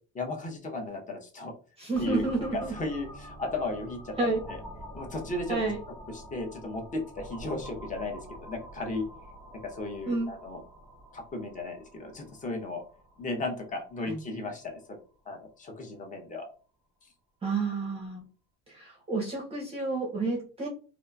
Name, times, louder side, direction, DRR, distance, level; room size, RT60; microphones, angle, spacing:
voice 1, 0.1-1.5 2.0-4.1 4.5-4.6 4.9-5.6 6.1-9.1 9.5-10.6 11.1-12.8 13.2-14.8 15.3-16.5, left 2 dB, 25° left, 3 dB, 0.7 m, -35 dB
voice 2, 1.8-2.7 4.2-4.4 5.5-5.8 10.1-10.3 14.1-14.2 17.4-18.2 18.7-20.7, right 3 dB, 20° right, -1 dB, 0.6 m, -30 dB
sound 1, 2.0-15.5, equal, 5° left, 1.1 m, -47 dB
2.7 x 2.5 x 2.3 m, 0.38 s
cardioid pair, 130°, 32 cm